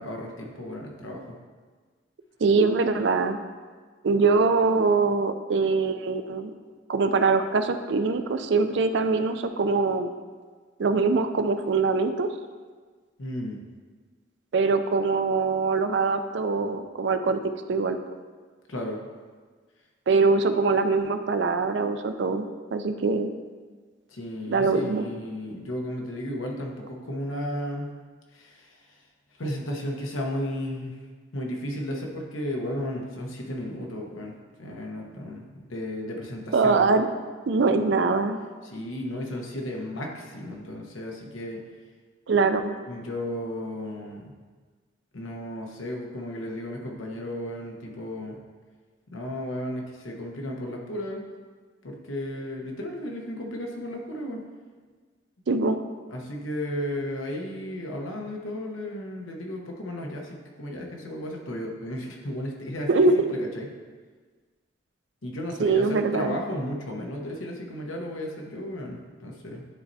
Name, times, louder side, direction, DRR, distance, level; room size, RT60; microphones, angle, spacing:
voice 1, 0.0-1.3 13.2-13.6 18.7-19.0 24.1-27.9 28.3-29.0 29.4-31.0 31.3-34.3 34.6-36.9 38.6-41.6 42.9-44.3 45.1-48.4 49.1-51.2 51.8-54.4 56.1-63.7 65.2-69.7, left 1 dB, 85° left, 0 dB, 1.0 m, -34 dB
voice 2, 2.4-3.4 4.0-6.5 6.9-10.1 10.8-12.3 14.5-18.0 20.1-23.3 24.5-25.1 36.5-37.1 37.5-38.4 42.3-42.7 55.5-55.8 62.9-63.1 65.6-66.4, right 4 dB, 60° right, 8 dB, 0.4 m, -23 dB
10.5 x 4.3 x 2.7 m, 1.5 s
head